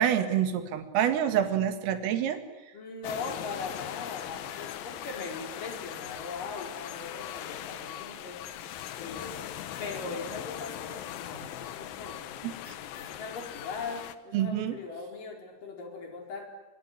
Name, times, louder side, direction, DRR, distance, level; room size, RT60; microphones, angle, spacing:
voice 1, 0.0-2.4 11.3-11.5 12.4-12.5 14.3-14.8, right 10 dB, 85° right, 8 dB, 4.7 m, -27 dB
voice 2, 2.7-8.4 9.0-9.4 9.8-12.4 13.0-16.5, left 4 dB, 45° left, 2 dB, 5.9 m, -40 dB
sound 1, 3.0-14.1, left 11 dB, 75° left, 2.1 m, -40 dB
25.5 x 23.5 x 10.0 m, 1.1 s
omnidirectional pair, 5.8 m